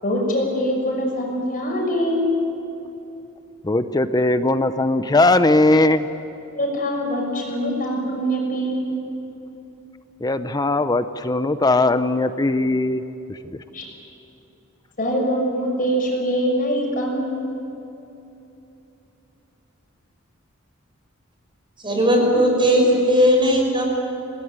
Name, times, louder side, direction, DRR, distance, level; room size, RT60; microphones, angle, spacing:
voice 1, 0.0-2.3 6.5-8.9 13.7-13.8 15.0-17.4, equal, 45° left, 0 dB, 6.3 m, -23 dB
voice 2, 3.6-6.1 10.2-13.0 13.3-13.4, left 2 dB, 20° left, 11 dB, 0.7 m, -19 dB
voice 3, 21.8-23.8, equal, 25° right, 1 dB, 6.1 m, -17 dB
27.0 x 19.0 x 9.7 m, 2.9 s
head